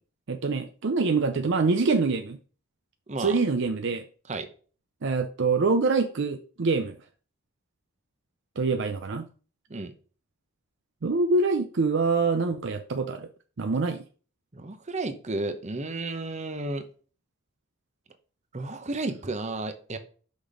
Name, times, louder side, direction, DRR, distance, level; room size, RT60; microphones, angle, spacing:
voice 1, 0.3-2.4 3.2-4.0 5.0-7.0 8.6-9.3 11.0-13.3 13.6-14.0, right 4 dB, 55° right, 0.5 m, -25 dB
voice 2, 14.5-16.8 18.5-20.0, right 2 dB, 35° right, 0.8 m, -32 dB
6.3 x 5.2 x 4.9 m
head